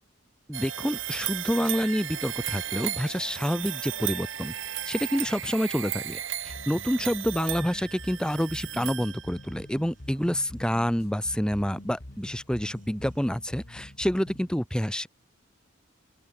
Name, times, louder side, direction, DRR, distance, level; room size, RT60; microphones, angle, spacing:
voice 1, 0.5-4.5 4.9-15.1, equal, 5° left, 1.2 m, -28 dB
sound 1, 0.5-9.6, right 12 dB, 65° right, 1.2 m, -35 dB
sound 2, 2.0-14.3, right 2 dB, 40° right, 7.6 m, -61 dB
sound 3, 6.5-14.5, left 1 dB, 50° left, 2.1 m, -45 dB
open air
head